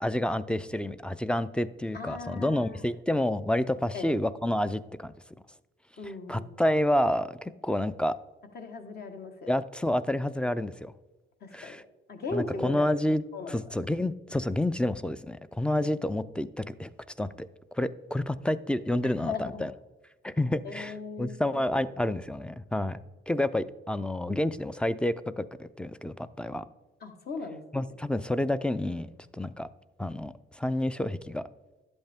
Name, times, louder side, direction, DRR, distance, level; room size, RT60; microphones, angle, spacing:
voice 1, 0.0-5.1 6.0-8.2 9.5-10.9 11.5-11.8 12.3-13.2 13.5-16.9 17.2-17.5 17.7-19.7 20.2-20.9 21.2-26.6 27.7-29.1 29.3-29.7 30.0-31.4, left 1 dB, 5° left, 14 dB, 0.4 m, -29 dB
voice 2, 1.9-2.8 3.9-4.2 6.0-6.6 8.5-9.5 11.4-11.8 12.1-12.9 13.3-13.6 15.8-15.9 19.0-19.7 20.6-21.8 27.0-27.6, left 4 dB, 55° left, 5 dB, 1.3 m, -38 dB
11.0 x 7.9 x 3.5 m, 1.1 s
cardioid pair, 90°, 20 cm